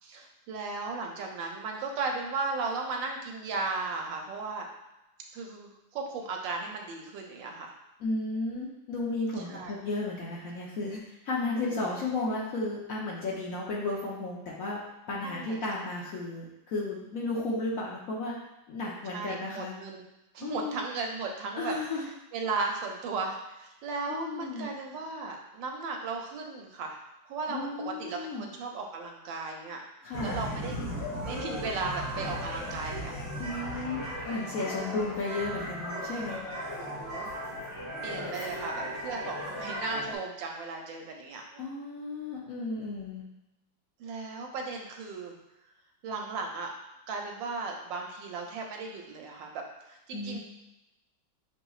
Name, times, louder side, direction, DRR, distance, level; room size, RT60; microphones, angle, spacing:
voice 1, 0.0-4.7 5.3-7.7 9.4-9.8 11.6-11.7 15.2-15.6 19.1-20.0 20.3-21.8 22.3-27.0 27.3-29.8 30.2-30.9 31.2-33.1 34.7-35.0 36.8-37.3 38.0-41.6 44.0-45.4 46.0-46.7 47.1-50.4, right 4 dB, 80° right, 1 dB, 1.3 m, -36 dB
voice 2, 8.0-14.8 15.1-18.3 18.7-19.7 20.4-20.8 21.6-22.1 24.1-24.7 27.5-28.5 30.0-30.4 33.4-36.4 41.6-43.2 50.1-50.4, left 2 dB, 60° left, -4 dB, 0.9 m, -34 dB
sound 1, 30.1-40.2, equal, 75° left, 2.2 m, -36 dB
6.7 x 3.0 x 2.3 m, 0.93 s
omnidirectional pair, 2.1 m